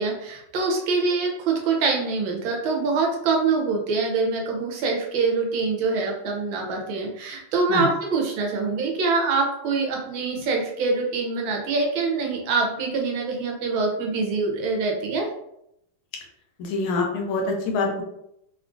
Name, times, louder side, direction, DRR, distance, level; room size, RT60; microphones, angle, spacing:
voice 1, 0.0-15.3, right 4 dB, 75° right, 1 dB, 1.3 m, -24 dB
voice 2, 16.6-18.0, left 3 dB, 80° left, 1 dB, 1.5 m, -25 dB
3.5 x 2.4 x 2.4 m, 0.79 s
omnidirectional pair, 2.3 m